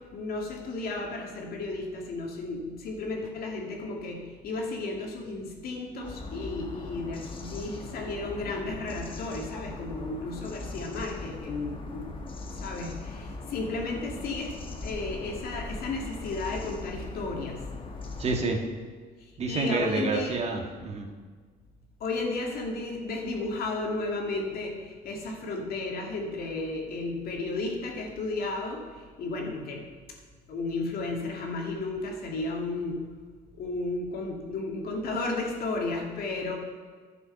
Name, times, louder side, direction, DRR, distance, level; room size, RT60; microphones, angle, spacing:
voice 1, 0.1-12.1 12.5-14.5 14.8-17.6 19.2-20.4 22.0-29.9 30.5-33.0 33.6-36.5, left 3 dB, 65° left, 0 dB, 2.3 m, -33 dB
sound 1, 6.0-18.4, left 3 dB, 30° left, 1.3 m, -40 dB
voice 2, 18.2-18.6 19.4-21.1, right 3 dB, 40° right, 2 dB, 1.6 m, -28 dB
11.0 x 6.9 x 5.7 m, 1.5 s
cardioid pair, 110°, 17 cm